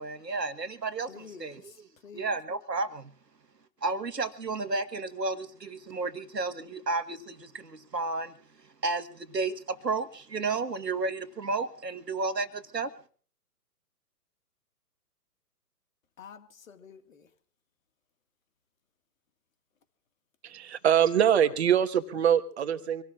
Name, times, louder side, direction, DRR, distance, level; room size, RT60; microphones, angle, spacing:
voice 1, 0.0-1.1 1.4-1.5 2.1-3.1 3.8-8.3 8.8-12.9, right 3 dB, 80° right, 1.5 m, -32 dB
voice 2, 1.1-2.4 16.2-17.3, left 6 dB, 55° left, 2.0 m, -49 dB
voice 3, 20.4-23.0, right 9 dB, 40° right, 1.4 m, -24 dB
26.5 x 18.0 x 2.4 m
figure-of-eight pair, 130°, 48 cm